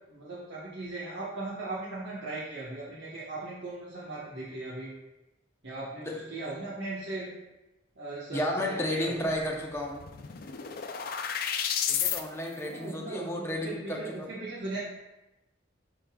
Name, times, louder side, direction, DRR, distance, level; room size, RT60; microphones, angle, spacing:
voice 1, 0.1-4.9 5.6-7.3 8.0-9.3 12.5-14.8, right 2 dB, 70° right, -9 dB, 1.1 m, -38 dB
voice 2, 8.3-10.0 11.9-14.3, left 1 dB, 15° left, 0 dB, 0.7 m, -32 dB
sound 1, 9.4-9.5 9.7-12.2, left 8 dB, 50° left, 0.4 m, -31 dB
10.5 x 3.9 x 2.3 m, 0.98 s
head